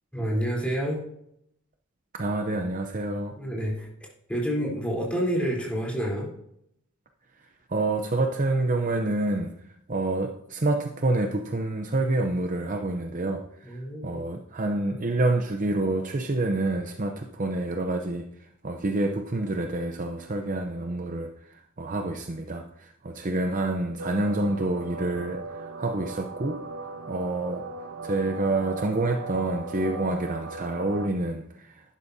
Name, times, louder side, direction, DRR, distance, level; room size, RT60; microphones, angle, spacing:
voice 1, 0.1-1.0 3.4-6.3 13.6-14.2, equal, 5° left, 3.7 m, -29 dB
voice 2, 2.1-3.3 7.7-9.5 9.9-18.3 18.6-26.6 27.1-27.7 28.0-31.8, right 2 dB, 35° right, 0.7 m, -28 dB
sound 1, 24.0-31.1, right 3 dB, 80° right, 1.0 m, -38 dB
12.0 x 11.5 x 2.7 m
head